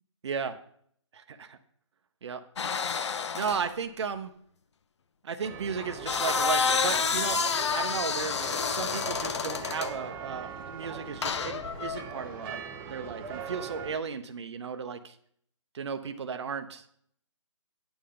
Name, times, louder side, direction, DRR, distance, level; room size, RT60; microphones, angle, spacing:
voice 1, 0.2-0.6 1.1-1.6 2.2-2.4 3.3-4.3 5.2-15.1 15.7-16.8, right 6 dB, 60° right, 7 dB, 0.7 m, -35 dB
sound 1, 2.6-3.7 5.8-10.0 11.2-12.0, left 5 dB, 60° left, 0.6 m, -29 dB
sound 2, 5.4-14.0, right 6 dB, 10° right, 0.6 m, -41 dB
9.0 x 8.7 x 3.7 m, 0.64 s
hypercardioid pair, 155°, 17 cm